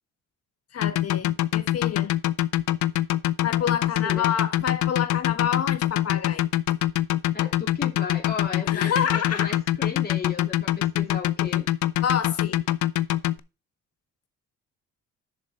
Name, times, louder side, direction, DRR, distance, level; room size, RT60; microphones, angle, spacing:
voice 1, 0.7-2.1 3.4-6.4 8.7-9.6 12.0-12.6, left 8 dB, 55° left, 1.6 m, -28 dB
sound 1, 0.8-13.4, left 14 dB, 75° left, 0.6 m, -24 dB
voice 2, 7.3-11.7, left 5 dB, 30° left, 3.7 m, -35 dB
6.7 x 6.7 x 4.7 m
cardioid pair, 90°, 30 cm